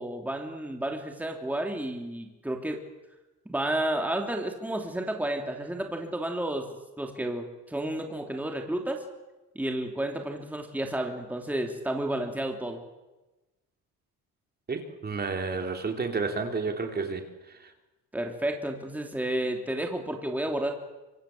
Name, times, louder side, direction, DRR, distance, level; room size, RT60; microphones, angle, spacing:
voice 1, 0.0-2.8 3.4-6.7 7.0-9.0 9.5-12.8 18.1-20.7, right 1 dB, 5° right, 3 dB, 3.0 m, -31 dB
voice 2, 14.7-17.7, right 4 dB, 25° right, 5 dB, 3.1 m, -31 dB
25.0 x 25.0 x 7.8 m, 1.1 s
cardioid pair, 140°, 35 cm